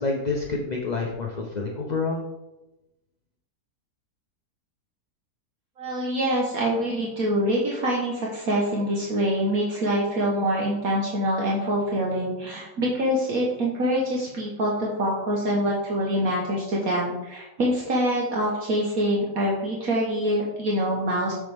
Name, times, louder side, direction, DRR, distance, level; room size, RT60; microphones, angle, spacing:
voice 1, 0.0-2.2, left 3 dB, 45° left, 0 dB, 0.5 m, -28 dB
voice 2, 5.8-21.3, equal, 60° right, -3 dB, 1.6 m, -25 dB
7.0 x 6.6 x 3.4 m, 0.98 s
omnidirectional pair, 1.7 m